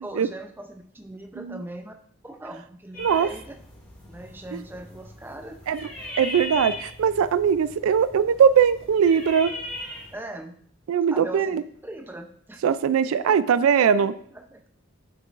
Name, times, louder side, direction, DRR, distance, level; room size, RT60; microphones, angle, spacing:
voice 1, 0.0-1.9 2.2-3.6 4.1-5.6 10.1-10.6 11.1-12.6 13.0-14.7, right 1 dB, 10° right, 4 dB, 0.5 m, -40 dB
sound 1, 2.9-10.1, left 1 dB, 10° left, 2.2 m, -39 dB
voice 2, 6.2-9.5 10.9-11.6 12.6-14.1, right 7 dB, 80° right, 15 dB, 0.3 m, -20 dB
7.4 x 6.8 x 2.5 m, 0.62 s
head